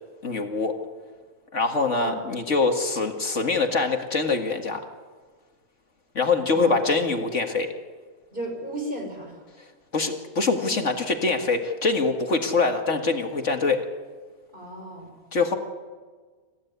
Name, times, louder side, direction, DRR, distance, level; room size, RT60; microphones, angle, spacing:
voice 1, 0.2-0.8 1.5-4.8 6.2-7.7 9.9-13.9 15.3-15.6, left 3 dB, 60° left, 5 dB, 2.2 m, -24 dB
voice 2, 8.3-9.4 14.5-15.1, right 1 dB, 35° right, 1 dB, 6.3 m, -34 dB
27.5 x 15.5 x 9.5 m, 1.5 s
omnidirectional pair, 1.4 m